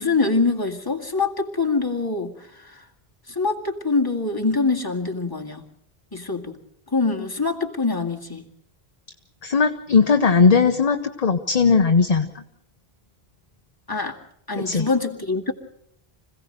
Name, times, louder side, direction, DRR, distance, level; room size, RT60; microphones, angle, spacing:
voice 1, 0.0-2.3 3.4-5.6 6.1-6.6 6.9-8.4 13.9-14.2 14.5-15.5, left 3 dB, 20° left, 1 dB, 2.1 m, -24 dB
voice 2, 9.4-12.4 14.6-14.9, left 5 dB, 40° left, 7 dB, 0.9 m, -18 dB
25.5 x 16.5 x 6.7 m, 0.74 s
omnidirectional pair, 1.0 m